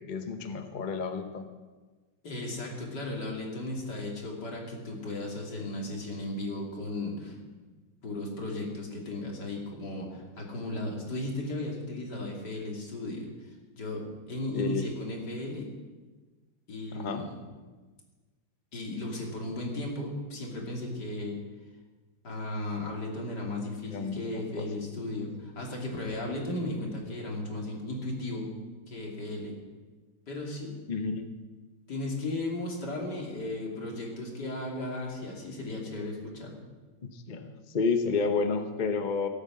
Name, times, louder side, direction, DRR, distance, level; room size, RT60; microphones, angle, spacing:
voice 1, 0.0-1.5 14.5-14.8 16.9-17.2 23.9-24.7 30.9-31.3 37.0-39.3, left 4 dB, 40° left, 7 dB, 0.7 m, -31 dB
voice 2, 2.2-7.4 8.0-14.0 14.3-15.7 16.7-17.4 18.7-21.4 22.2-28.5 28.9-29.5 30.3-30.8 31.9-36.6, left 2 dB, 60° left, -1 dB, 3.4 m, -35 dB
16.5 x 8.9 x 7.5 m, 1.3 s
omnidirectional pair, 2.1 m